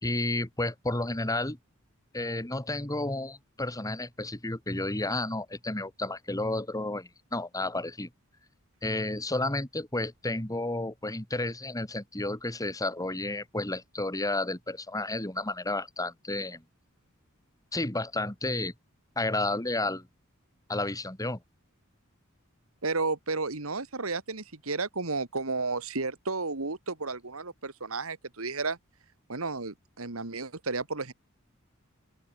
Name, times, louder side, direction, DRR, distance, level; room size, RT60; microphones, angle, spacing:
voice 1, 0.0-1.6 2.1-8.1 8.8-16.6 17.7-18.7 19.2-20.1 20.7-21.4, left 2 dB, 15° left, 2.0 m, -31 dB
voice 2, 22.8-28.8 29.3-31.1, right 3 dB, 85° right, 2.3 m, -32 dB
open air
head